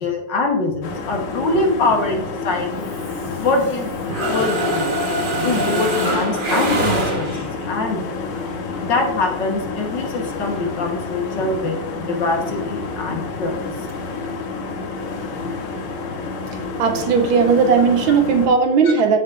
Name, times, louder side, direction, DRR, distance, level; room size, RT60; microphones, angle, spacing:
voice 1, 0.0-2.9 3.4-4.9 5.2-8.1 8.8-13.7 18.8-18.9, left 3 dB, 60° left, 1 dB, 1.8 m, -23 dB
sound 1, 0.8-18.5, left 4 dB, 85° left, 2.0 m, -29 dB
Mechanisms, 2.9-3.8 4.1-7.6, right 1 dB, 30° right, 1.0 m, -23 dB
voice 2, 16.8-19.2, right 5 dB, 75° right, 5 dB, 1.5 m, -16 dB
13.0 x 5.0 x 2.5 m, 0.95 s
omnidirectional pair, 2.3 m